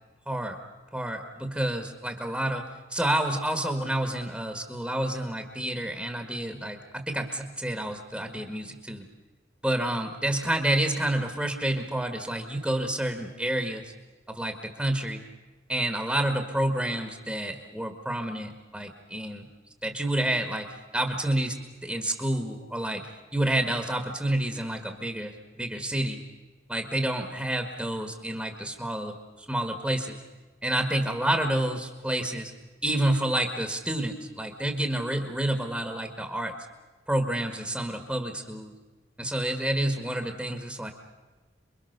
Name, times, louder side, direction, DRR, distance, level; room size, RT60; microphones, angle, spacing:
voice 1, 0.2-0.6 0.9-9.0 9.6-13.9 14.3-15.2 15.7-19.5 19.8-21.6 21.8-25.3 25.6-26.2 26.7-29.1 29.5-30.2 30.6-32.5 32.8-36.5 37.1-38.7 39.2-40.9, right 1 dB, 5° right, 5 dB, 1.6 m, -29 dB
28.5 x 22.5 x 6.7 m, 1.3 s
head